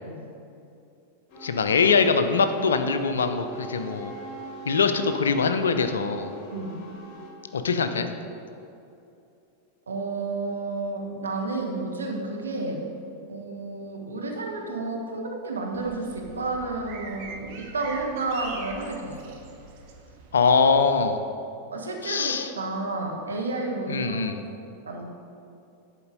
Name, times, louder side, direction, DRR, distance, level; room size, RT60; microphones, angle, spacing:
sound 1, 1.3-7.3, right 1 dB, 35° left, 1.9 m, -41 dB
voice 1, 1.4-4.1 4.7-6.3 7.5-8.1 20.3-21.2 22.0-22.5 23.9-24.4, left 5 dB, 70° left, 9 dB, 0.5 m, -23 dB
voice 2, 9.9-12.8 13.3-19.1 21.7-24.2 24.8-25.0, right 3 dB, 70° right, 0 dB, 1.2 m, -31 dB
sound 2, 15.7-20.8, right 3 dB, 45° right, 1.0 m, -43 dB
11.0 x 4.5 x 5.3 m, 2.7 s
figure-of-eight pair, 90°, 0 cm